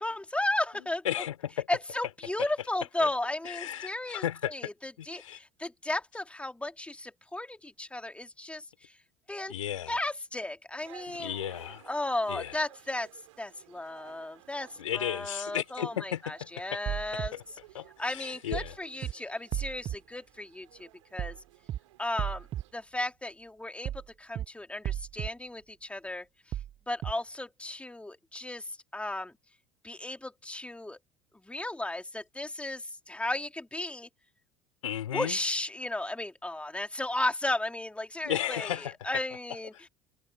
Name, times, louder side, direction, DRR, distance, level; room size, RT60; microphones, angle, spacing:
voice 1, 0.0-1.0 1.7-8.9 9.3-9.5 9.9-11.4 11.8-13.1 13.4-17.3 18.0-21.4 22.0-22.5 22.7-23.9 24.2-26.3 26.9-29.3 29.8-31.0 31.4-34.1 35.1-39.9, left 2 dB, 5° left, 2.8 m, -34 dB
voice 2, 1.1-1.7 2.4-2.5 3.0-3.1 3.4-4.7 5.0-5.4 9.5-10.0 11.1-11.8 12.3-12.6 14.8-16.3 16.7-16.8 17.1-17.4 17.7-18.8 34.8-35.4 38.2-39.2 39.7-39.8, left 11 dB, 80° left, 3.7 m, -34 dB
sound 1, 10.8-22.7, right 16 dB, 70° right, 4.9 m, -56 dB
sound 2, 16.9-17.3 18.5-18.7 19.0-19.1 19.5-20.0 21.2-21.4 21.7-21.8 22.2-22.6 23.9-24.1 24.4-24.5 24.8-25.3 26.5-26.7 27.0-27.1, right 11 dB, 35° right, 0.5 m, -33 dB
figure-of-eight pair, 70°, 17 cm